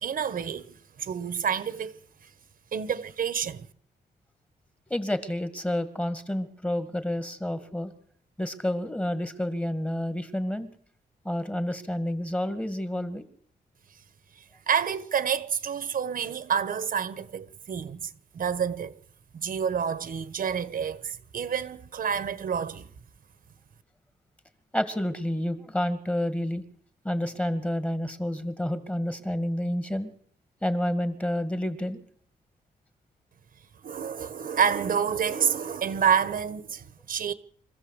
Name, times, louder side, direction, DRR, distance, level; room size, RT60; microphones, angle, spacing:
voice 1, 0.0-0.7 1.0-2.0 2.7-3.7 14.7-18.0 18.3-19.0 19.3-22.9 33.8-37.3, right 7 dB, 55° right, 1.3 m, -28 dB
voice 2, 4.9-7.9 8.4-10.7 11.3-13.2 24.7-26.6 27.0-30.1 30.6-32.0, left 1 dB, 10° left, 1.8 m, -29 dB
25.0 x 15.0 x 8.1 m
wide cardioid pair, 140°, 17 cm